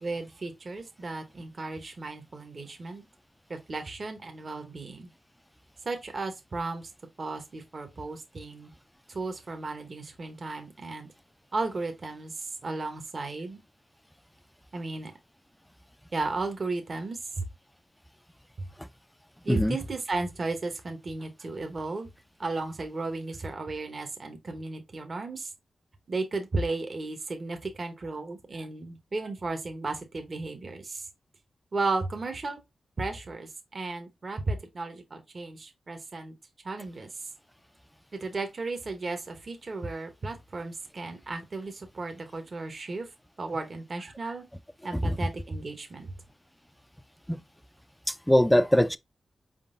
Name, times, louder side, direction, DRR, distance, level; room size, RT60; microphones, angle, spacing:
voice 1, 0.0-3.0 3.5-5.1 5.8-6.9 7.2-8.7 9.1-11.1 11.5-13.6 14.7-15.1 16.1-17.5 18.6-18.7 19.4-22.1 22.4-25.5 26.1-31.1 31.7-32.6 33.0-36.3 36.6-37.1 38.1-43.1 43.4-44.4 44.8-46.1, right 3 dB, 45° right, 0.9 m, -34 dB
voice 2, 48.1-49.0, equal, 5° left, 0.3 m, -22 dB
4.6 x 3.7 x 2.5 m
cardioid pair, 85°, 0 cm